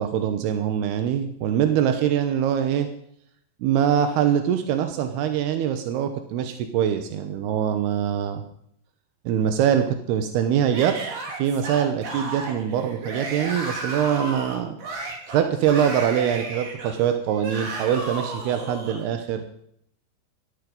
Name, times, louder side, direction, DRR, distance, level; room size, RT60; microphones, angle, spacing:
voice 1, 0.0-2.9 3.6-8.4 9.3-11.0 11.4-14.8 15.3-19.7, right 9 dB, 75° right, 7 dB, 2.5 m, -23 dB
Yell / Screaming, 10.7-19.0, right 2 dB, 45° right, 4.2 m, -33 dB
17.0 x 13.0 x 5.4 m, 0.70 s
omnidirectional pair, 5.9 m